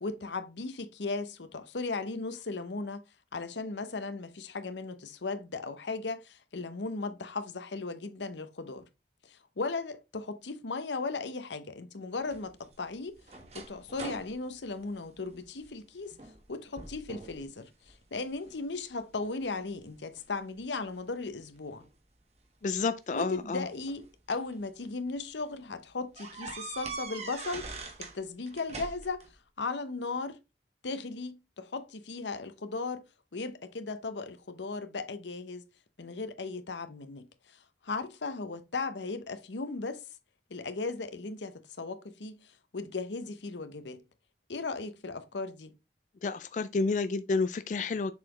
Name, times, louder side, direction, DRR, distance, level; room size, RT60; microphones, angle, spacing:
voice 1, 0.0-3.0 3.3-8.9 9.2-13.2 13.5-16.2 16.5-21.9 23.1-27.7 28.0-29.2 29.6-30.4 30.8-33.0 33.3-35.6 36.0-40.0 40.5-44.0 44.5-45.7, left 3 dB, 85° left, 0.8 m, -37 dB
sound 1, 12.3-15.7 16.1-16.5 16.8-17.4 17.9-18.6 19.2-20.6 21.8-21.9 23.1-24.5 25.1-25.2 25.5-25.6 26.2-28.2 28.5-29.3, right 3 dB, 35° right, 1.3 m, -43 dB
voice 2, 22.6-23.6 46.2-48.1, left 4 dB, 45° left, 0.3 m, -30 dB
7.2 x 4.3 x 3.0 m
head